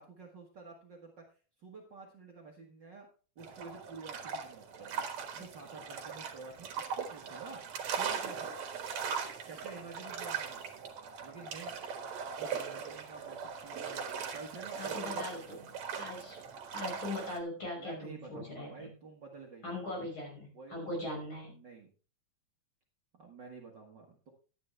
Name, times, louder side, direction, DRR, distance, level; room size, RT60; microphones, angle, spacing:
voice 1, 0.0-3.1 3.4-7.6 8.0-8.5 9.5-10.6 11.2-11.8 12.3-15.8 17.8-19.8 20.5-20.7 21.5-21.9 23.1-24.3, right 4 dB, 45° right, 0 dB, 1.8 m, -50 dB
sound 1, 3.4-17.4, right 6 dB, 70° right, 2.7 m, -40 dB
voice 2, 14.8-15.4 16.0-16.4 16.7-18.9 19.6-21.6, left 1 dB, 45° left, -1 dB, 6.3 m, -40 dB
11.5 x 10.5 x 3.2 m, 0.38 s
omnidirectional pair, 3.3 m